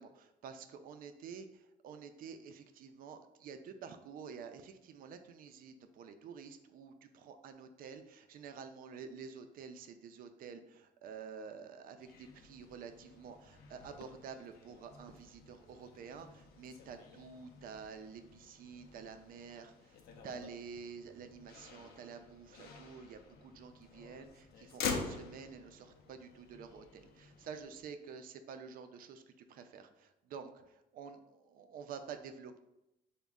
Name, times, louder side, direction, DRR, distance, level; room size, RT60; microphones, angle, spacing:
voice 1, 0.0-20.0 20.2-29.2 29.5-32.6, right 6 dB, 60° right, 8 dB, 0.4 m, -49 dB
Motor vehicle (road), 12.0-27.8, left 5 dB, 70° left, 0.5 m, -47 dB
4.0 x 2.1 x 3.5 m, 0.88 s
cardioid pair, 110°, 17 cm